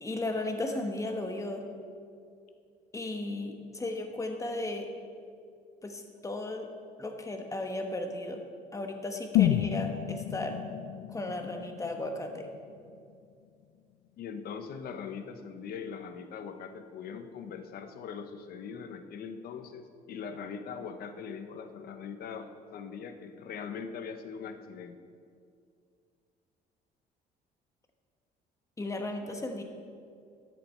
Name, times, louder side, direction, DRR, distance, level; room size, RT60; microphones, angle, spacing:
voice 1, 0.0-1.6 2.9-4.9 5.8-6.7 7.0-8.4 8.7-10.6 11.1-12.5 28.8-29.6, left 2 dB, 20° left, 4 dB, 1.2 m, -35 dB
sound 1, 9.3-13.3 13.6-13.7, left 11 dB, 85° left, 0.5 m, -31 dB
voice 2, 14.2-25.0, left 6 dB, 65° left, 8 dB, 0.9 m, -41 dB
13.5 x 7.6 x 4.4 m, 2.3 s
cardioid pair, 110°, 17 cm